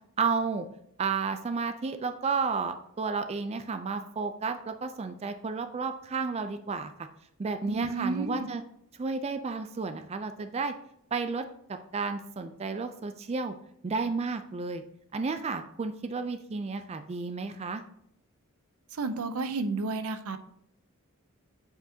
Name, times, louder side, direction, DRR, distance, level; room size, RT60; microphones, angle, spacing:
voice 1, 0.2-0.7 1.0-6.9 7.4-8.6 9.0-10.7 11.1-13.5 13.8-14.8 15.1-17.8, right 4 dB, 30° right, 8 dB, 0.3 m, -32 dB
voice 2, 7.6-8.5 18.9-20.4, right 3 dB, 85° right, 10 dB, 0.6 m, -31 dB
7.8 x 4.9 x 2.7 m, 0.73 s
head